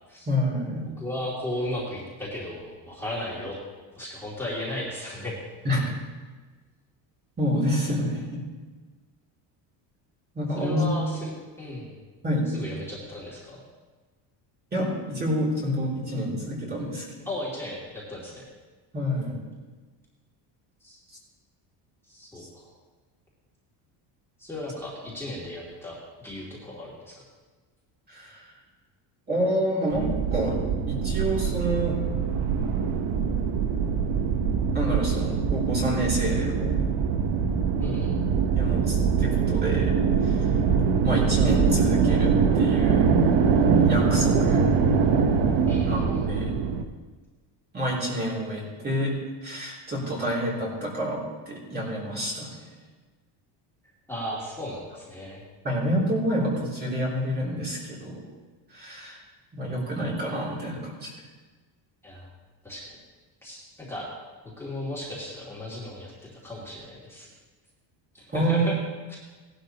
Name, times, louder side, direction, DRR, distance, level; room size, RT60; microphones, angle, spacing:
voice 1, 0.3-0.8 5.6-5.9 7.4-8.4 10.3-10.9 12.2-12.5 14.7-17.3 18.9-19.4 22.4-22.5 28.1-28.4 29.3-30.6 30.9-32.0 34.7-36.8 38.6-39.9 40.2-40.5 41.0-43.1 43.8-44.7 45.8-46.5 47.7-49.1 49.4-52.6 55.6-58.2 58.7-59.2 59.5-61.1 68.3-68.6, equal, 20° right, -5 dB, 2.9 m, -28 dB
voice 2, 1.0-3.6 4.0-5.4 10.5-11.3 11.6-11.9 12.5-13.6 17.3-18.4 20.8-21.0 22.1-22.7 24.4-26.0 26.2-27.1 37.8-38.1 45.7-46.3 54.1-55.4 62.0-62.3 62.6-62.9 63.4-64.1 64.6-66.1 66.4-67.3 68.1-68.7 69.1-69.2, left 1 dB, 5° left, -7 dB, 2.6 m, -35 dB
sound 1, 29.9-46.8, right 6 dB, 65° right, 1.1 m, -23 dB
18.0 x 11.5 x 3.0 m, 1.3 s
cardioid pair, 160°, 44 cm